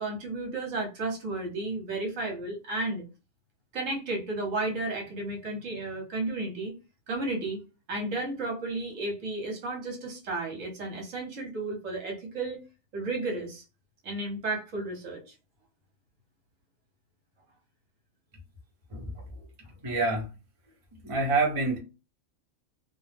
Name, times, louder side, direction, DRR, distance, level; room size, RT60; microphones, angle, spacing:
voice 1, 0.0-3.0 3.7-6.7 7.1-7.6 7.9-12.6 12.9-13.6 14.0-15.2, right 2 dB, 70° right, 1.2 m, -33 dB
voice 2, 19.8-20.3 21.0-21.8, right 3 dB, 30° right, 0.9 m, -26 dB
2.5 x 2.2 x 3.3 m
omnidirectional pair, 1.4 m